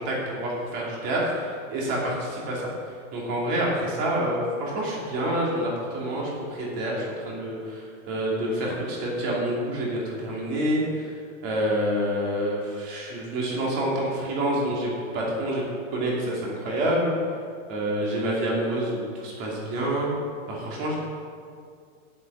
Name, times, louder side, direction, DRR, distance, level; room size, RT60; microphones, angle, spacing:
voice 1, 0.0-2.7 3.1-14.9 15.1-15.6 15.9-17.1 17.7-20.1 20.5-21.0, right 1 dB, 30° right, -4 dB, 2.7 m, -27 dB
8.2 x 8.1 x 7.3 m, 2.2 s
supercardioid pair, 175°, 39 cm